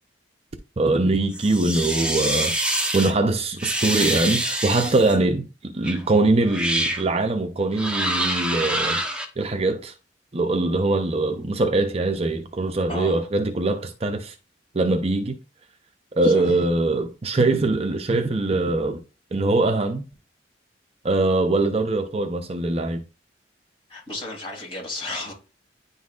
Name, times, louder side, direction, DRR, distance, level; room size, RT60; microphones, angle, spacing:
voice 1, 0.8-2.5 2.9-9.0 9.4-9.9 10.3-14.3 14.7-15.4 16.2-19.0 19.3-20.1 21.0-23.0, right 2 dB, 35° right, 0.6 m, -22 dB
sound 1, 1.3-3.1 3.6-5.2 5.8-6.0 6.5-7.0 7.7-9.3, right 1 dB, 5° right, 0.9 m, -25 dB
voice 2, 12.9-13.2 16.2-16.6 23.9-25.3, left 2 dB, 30° left, 2.7 m, -33 dB
10.0 x 4.0 x 2.4 m
head